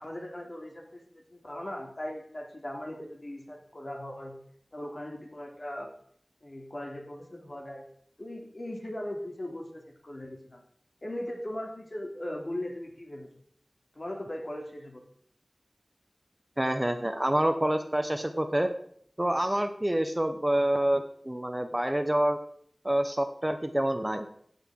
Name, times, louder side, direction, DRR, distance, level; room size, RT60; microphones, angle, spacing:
voice 1, 0.0-4.4 4.7-5.9 6.4-7.8 8.2-10.6 11.0-13.3 13.9-15.0, left 1 dB, 45° left, 1 dB, 2.8 m, -39 dB
voice 2, 16.6-18.7 19.2-22.4 22.8-24.3, right 1 dB, 20° right, 8 dB, 0.9 m, -27 dB
15.5 x 8.0 x 3.7 m, 0.64 s
wide cardioid pair, 50°, 0 cm